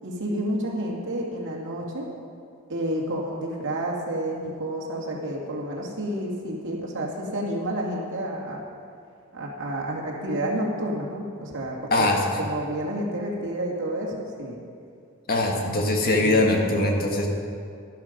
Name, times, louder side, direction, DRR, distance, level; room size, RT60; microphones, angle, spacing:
voice 1, 0.0-2.1 2.7-8.6 9.3-14.6 16.2-16.6, right 1 dB, 60° right, -3 dB, 2.5 m, -30 dB
voice 2, 15.3-17.3, left 2 dB, 45° left, 1 dB, 1.7 m, -22 dB
12.5 x 11.5 x 5.4 m, 2.4 s
head